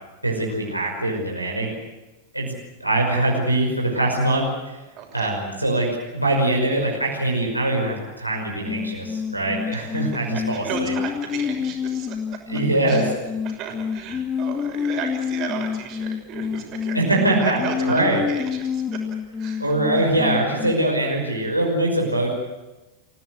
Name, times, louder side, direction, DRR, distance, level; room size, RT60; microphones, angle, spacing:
voice 1, 0.2-1.7 2.3-2.5 2.8-4.8 5.1-10.9 12.5-13.1 16.9-18.2 19.6-22.4, right 1 dB, 85° right, -2 dB, 5.6 m, -23 dB
voice 2, 4.9-5.4 9.7-10.0 10.3-12.4 12.9-13.1 13.4-17.0 17.4-19.0 19.4-20.2, right 7 dB, 35° right, 3 dB, 6.3 m, -34 dB
sound 1, 8.7-20.7, left 6 dB, 20° left, 0.7 m, -28 dB
27.5 x 17.0 x 8.2 m, 1.1 s
figure-of-eight pair, 90°, 0 cm